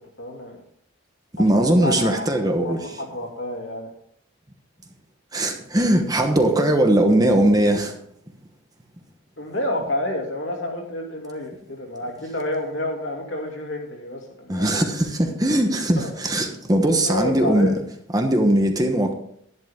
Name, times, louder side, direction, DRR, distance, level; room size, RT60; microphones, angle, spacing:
voice 1, 0.2-0.6 1.5-2.3 2.6-3.9 9.4-14.8 16.0-16.1 16.8-17.8, left 1 dB, 60° left, 0 dB, 2.8 m, -29 dB
voice 2, 1.3-3.0 5.3-7.9 14.5-17.7 18.1-19.1, right 1 dB, 20° right, 4 dB, 1.1 m, -20 dB
11.5 x 11.0 x 3.6 m, 0.68 s
head